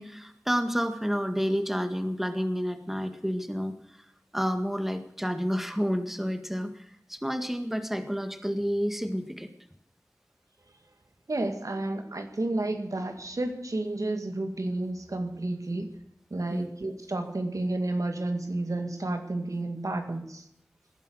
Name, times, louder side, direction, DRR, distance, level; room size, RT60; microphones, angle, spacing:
voice 1, 0.0-3.8 4.3-9.5 16.5-16.7, equal, 5° right, 8 dB, 1.8 m, -30 dB
voice 2, 11.3-15.9 16.3-20.4, right 2 dB, 70° right, 6 dB, 2.0 m, -31 dB
18.5 x 11.0 x 6.4 m, 0.79 s
wide cardioid pair, 45°, 6 cm